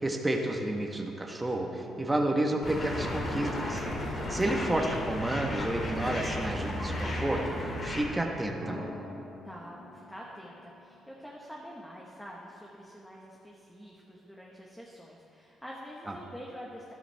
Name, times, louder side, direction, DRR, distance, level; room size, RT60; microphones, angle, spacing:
voice 1, 0.0-3.8 4.3-7.4 7.8-8.8, right 1 dB, 15° right, 2 dB, 1.3 m, -30 dB
sound 1, 2.6-8.0, left 1 dB, 45° left, 2.9 m, -34 dB
voice 2, 4.5-4.9 9.4-16.9, equal, 5° left, -4 dB, 1.4 m, -46 dB
sound 2, 8.6-11.9 12.2-12.3, equal, 40° right, 3.0 m, -48 dB
13.0 x 11.5 x 3.5 m, 2.8 s
cardioid pair, 90°, 0 cm